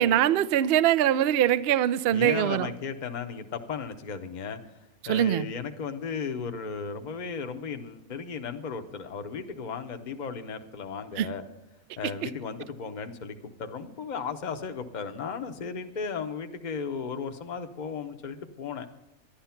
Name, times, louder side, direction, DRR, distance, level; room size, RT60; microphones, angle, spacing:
voice 1, 0.0-2.7 5.0-5.5 11.2-11.3, right 11 dB, 60° right, 0.6 m, -23 dB
voice 2, 2.1-4.6 5.1-11.4 12.0-18.9, left 5 dB, 40° left, 0.8 m, -35 dB
11.5 x 11.5 x 5.7 m
omnidirectional pair, 1.5 m